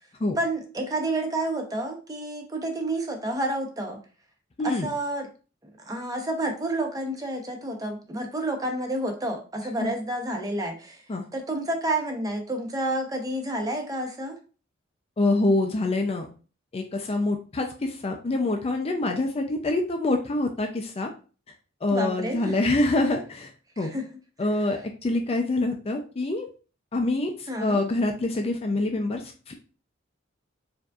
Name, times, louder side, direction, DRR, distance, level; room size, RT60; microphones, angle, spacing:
voice 1, 0.4-4.0 4.6-5.3 5.6-11.0 11.3-14.4 21.9-22.6 23.8-24.1 24.6-24.7 27.5-27.8, right 1 dB, 20° right, 3 dB, 0.7 m, -30 dB
voice 2, 4.6-4.9 9.8-9.9 11.1-11.2 15.2-16.3 16.7-21.1 21.8-23.5 23.8-23.9 24.4-26.5 26.9-27.3 27.6-29.2 29.5-29.6, left 2 dB, 30° left, 4 dB, 0.4 m, -25 dB
4.6 x 2.6 x 2.3 m, 0.36 s
head